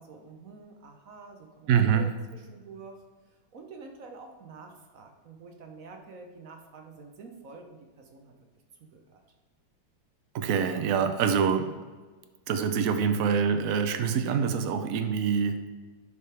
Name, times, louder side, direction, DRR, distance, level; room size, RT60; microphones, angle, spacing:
voice 1, 0.0-3.0 3.5-8.3 8.9-9.2, right 4 dB, 55° right, 2 dB, 1.1 m, -47 dB
voice 2, 1.7-2.1 10.3-11.7 12.5-15.7, right 7 dB, 85° right, 7 dB, 0.7 m, -25 dB
11.0 x 5.2 x 3.4 m, 1.4 s
omnidirectional pair, 2.2 m